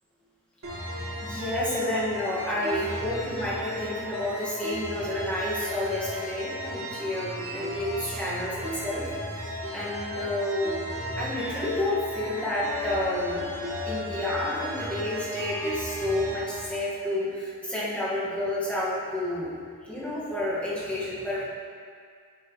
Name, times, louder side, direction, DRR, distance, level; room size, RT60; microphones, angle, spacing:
sound 1, 0.6-16.6, equal, 65° right, 2.1 m, -35 dB
voice 1, 1.2-9.0 9.7-10.8 11.2-13.5 13.9-19.5 19.8-21.4, left 1 dB, 5° left, -10 dB, 1.8 m, -30 dB
10.0 x 6.0 x 3.2 m, 2.1 s
head